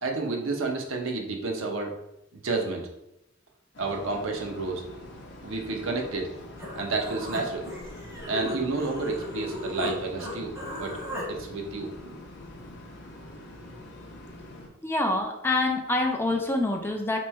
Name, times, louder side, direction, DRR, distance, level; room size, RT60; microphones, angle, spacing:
voice 1, 0.0-2.0 2.3-2.9 3.8-4.8 5.4-6.3 6.7-7.7 8.3-11.0 11.3-12.2, right 3 dB, 75° right, 1 dB, 0.6 m, -30 dB
sound 1, 3.7-14.7, left 1 dB, 60° left, 0.7 m, -45 dB
Human voice, 6.6-9.9 10.2-11.3, left 2 dB, 15° right, 1.0 m, -36 dB
voice 2, 14.8-17.2, left 2 dB, 10° left, 2 dB, 0.4 m, -26 dB
3.0 x 2.3 x 4.3 m, 0.87 s
head